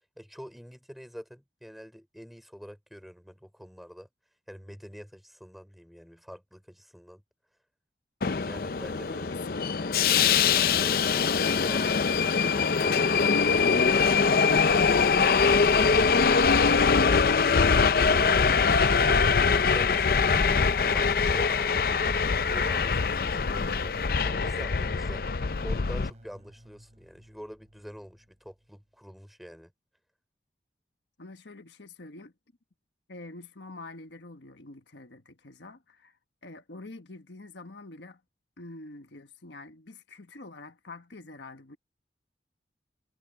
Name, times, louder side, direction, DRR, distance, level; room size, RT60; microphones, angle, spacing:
voice 1, 0.2-4.1 4.5-7.2 8.4-9.4 10.7-11.9 12.5-15.4 16.5-21.9 22.5-23.9 24.2-25.2 25.6-29.7, equal, ahead, 5.4 m, -45 dB
Subway metro underground, 8.2-26.1, left 5 dB, 55° left, 0.5 m, -23 dB
voice 2, 9.3-10.1 31.2-32.3 33.1-36.2 36.4-38.2 38.6-41.8, left 2 dB, 85° left, 1.4 m, -46 dB
sound 1, 23.3-28.8, equal, 40° right, 3.9 m, -53 dB
head